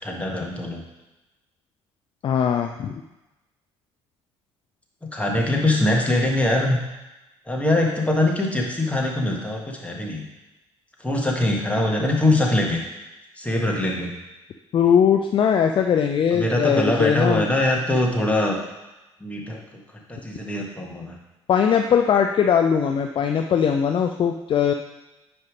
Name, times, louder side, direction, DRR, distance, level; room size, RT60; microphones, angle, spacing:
voice 1, 0.0-0.8 5.0-6.8 7.5-10.2 11.0-12.8 13.4-14.1 16.3-18.6 19.2-19.6 20.1-21.1, left 1 dB, 10° left, -1 dB, 1.7 m, -22 dB
voice 2, 2.2-3.0 14.7-17.5 21.5-24.7, left 7 dB, 35° left, 5 dB, 0.5 m, -20 dB
9.4 x 3.4 x 5.0 m, 1.0 s
figure-of-eight pair, 55°, 15 cm